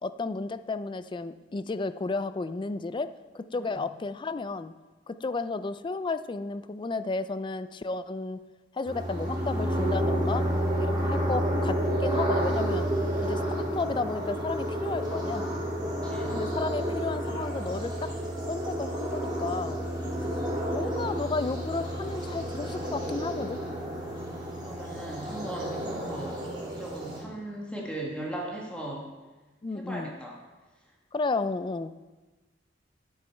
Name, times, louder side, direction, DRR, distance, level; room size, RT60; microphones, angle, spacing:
voice 1, 0.0-3.1 3.3-4.7 5.1-8.4 8.7-10.4 10.8-12.9 13.2-15.5 16.3-18.1 18.5-19.9 20.7-23.6 29.6-30.2 31.1-31.9, left 3 dB, 25° left, 12 dB, 0.4 m, -33 dB
sound 1, 8.9-27.2, equal, 25° right, 3.1 m, -30 dB
voice 2, 10.9-11.4 15.9-16.4 24.6-29.1 29.7-30.4, right 1 dB, 5° left, -2 dB, 1.6 m, -38 dB
11.0 x 9.1 x 4.5 m, 1.2 s
head